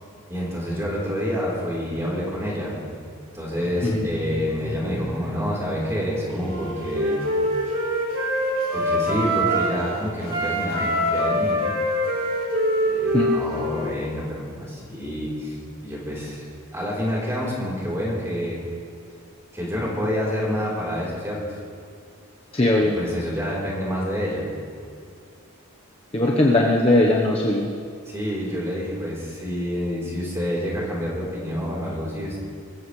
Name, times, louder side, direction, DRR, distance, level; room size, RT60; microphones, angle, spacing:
voice 1, 0.3-7.2 8.7-11.6 12.8-16.4 16.7-18.6 19.5-21.4 22.9-24.5 28.1-32.4, equal, 10° right, -5 dB, 3.8 m, -28 dB
Wind instrument woodwind instrument, 6.4-9.8 10.2-13.9, equal, 60° right, 3.6 m, -24 dB
voice 2, 22.5-23.0 26.1-27.7, left 1 dB, 25° left, -3 dB, 1.0 m, -19 dB
24.0 x 15.0 x 3.3 m, 2.2 s
head